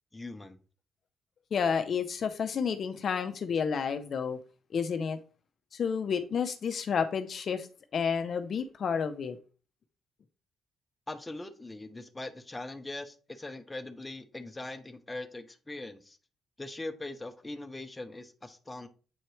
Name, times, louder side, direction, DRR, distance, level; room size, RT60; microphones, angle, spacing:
voice 1, 0.1-0.6 11.1-16.2 16.6-18.9, left 2 dB, 15° left, 5 dB, 0.8 m, -41 dB
voice 2, 1.5-4.4 4.7-5.2 5.7-7.7 7.9-9.4, left 6 dB, 50° left, 9 dB, 0.7 m, -30 dB
7.9 x 4.4 x 3.2 m, 0.38 s
cardioid pair, 115°, 0 cm